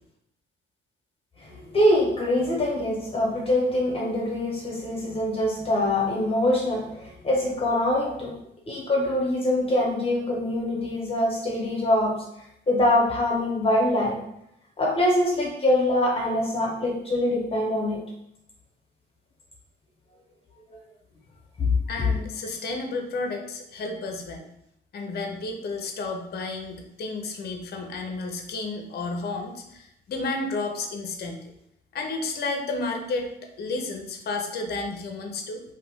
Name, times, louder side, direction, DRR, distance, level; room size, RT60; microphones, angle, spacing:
voice 1, 1.7-6.8 7.2-8.3 8.7-12.1 12.7-14.1 14.8-18.0, left 1 dB, 30° left, -3 dB, 1.1 m, -24 dB
voice 2, 21.9-24.5 24.9-31.4 31.9-35.6, left 3 dB, 55° left, 4 dB, 0.6 m, -32 dB
2.7 x 2.5 x 3.4 m, 0.80 s
cardioid pair, 90°, 20 cm